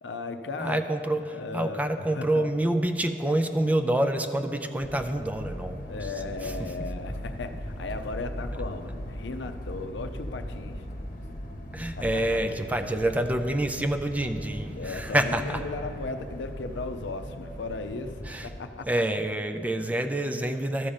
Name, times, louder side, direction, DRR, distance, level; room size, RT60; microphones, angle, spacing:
voice 1, 0.0-0.8 1.3-2.5 5.9-10.9 11.8-12.2 14.7-18.9, left 3 dB, 85° left, 7 dB, 0.6 m, -36 dB
voice 2, 0.6-5.9 6.4-6.5 11.7-15.6 18.3-18.5 18.9-20.9, right 1 dB, 10° right, 8 dB, 0.4 m, -27 dB
sound 1, 4.8-18.6, equal, 50° left, 1.0 m, -39 dB
13.0 x 5.1 x 7.1 m, 2.9 s
head